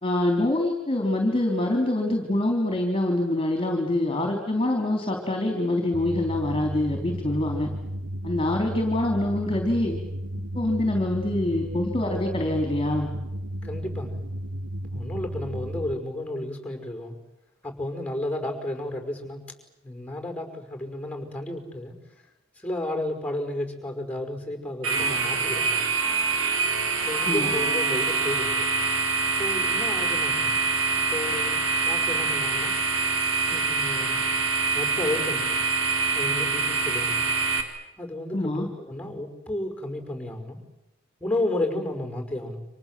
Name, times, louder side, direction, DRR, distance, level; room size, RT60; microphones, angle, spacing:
voice 1, 0.0-7.7 8.2-10.0 10.5-13.1 27.2-27.5 38.3-38.7, left 1 dB, 25° left, 3 dB, 3.6 m, -25 dB
sound 1, 5.9-15.9, equal, 80° right, 1.2 m, -33 dB
voice 2, 13.6-14.2 14.9-17.2 17.6-19.4 19.8-22.0 22.6-25.8 27.0-28.7 29.4-30.6 30.9-32.8 33.5-34.3 34.7-35.6 36.1-37.3 38.0-40.6 41.2-42.6, left 1 dB, 5° left, 5 dB, 5.2 m, -32 dB
sound 2, 24.8-37.6, right 4 dB, 65° right, 4.1 m, -25 dB
30.0 x 26.0 x 7.6 m, 0.92 s
head